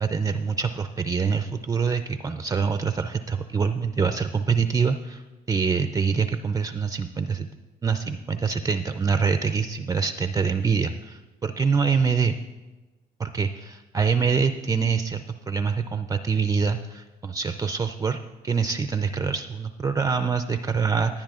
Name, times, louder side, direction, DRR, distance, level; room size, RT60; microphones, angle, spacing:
voice 1, 0.0-7.5 7.8-12.4 13.2-21.2, right 5 dB, 20° right, 8 dB, 0.4 m, -25 dB
18.0 x 9.9 x 2.4 m, 1.2 s
cardioid pair, 110°, 17 cm